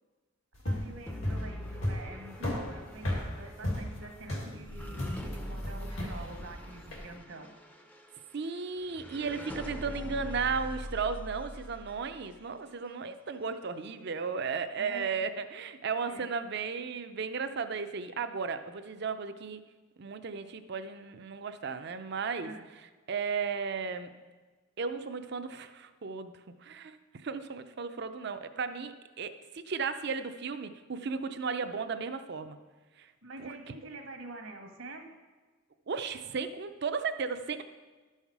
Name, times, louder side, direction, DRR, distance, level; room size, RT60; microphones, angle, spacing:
sound 1, 0.5-7.1, left 1 dB, 85° left, 2.0 m, -35 dB
voice 1, 0.6-7.5 14.8-15.2 16.1-16.3 22.4-22.6 33.2-35.1, right 2 dB, 75° right, 4 dB, 1.2 m, -46 dB
sound 2, 1.1-12.4, equal, 10° left, 0.5 m, -43 dB
voice 2, 8.3-19.6 20.0-22.5 23.1-24.1 24.8-26.3 26.6-27.0 27.2-32.6 33.0-33.1 33.4-33.5 35.9-37.6, right 5 dB, 55° right, 10 dB, 0.5 m, -35 dB
12.0 x 5.6 x 4.7 m, 1.3 s
head